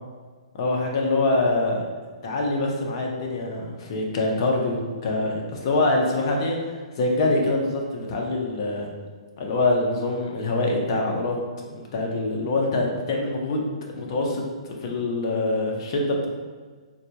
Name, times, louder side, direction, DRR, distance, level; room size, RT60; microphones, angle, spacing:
voice 1, 0.6-1.9 2.2-6.6 7.0-8.9 9.4-11.4 11.7-16.3, left 2 dB, 45° left, 0 dB, 0.7 m, -24 dB
3.9 x 2.3 x 2.9 m, 1.5 s
hypercardioid pair, 140°, 4 cm